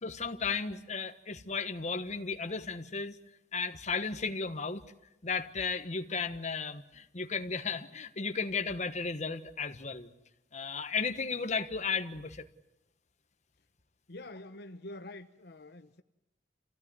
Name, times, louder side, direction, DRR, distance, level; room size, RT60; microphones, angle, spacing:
voice 1, 0.0-3.1 3.5-4.8 5.2-10.1 10.5-12.4, left 5 dB, 40° left, 1.3 m, -34 dB
voice 2, 14.1-16.0, left 1 dB, 65° left, 1.0 m, -46 dB
27.5 x 16.5 x 9.6 m
head